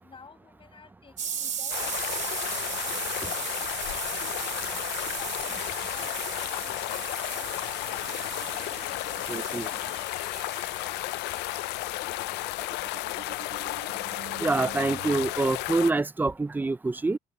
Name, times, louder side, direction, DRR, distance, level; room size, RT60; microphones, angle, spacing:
voice 1, 0.0-2.3 2.6-3.3 3.6-3.7 4.2-8.9 9.4-13.7, left 5 dB, 30° left, 7.1 m, -52 dB
sound 1, 1.2-11.8, right 8 dB, 45° right, 2.9 m, -37 dB
sound 2, 1.7-15.9, left 20 dB, 85° left, 0.5 m, -33 dB
sound 3, 7.9-15.3, right 11 dB, 65° right, 2.1 m, -48 dB
voice 2, 9.3-9.7 14.4-17.2, right 3 dB, 10° right, 0.5 m, -26 dB
open air
cardioid pair, 110°, 17 cm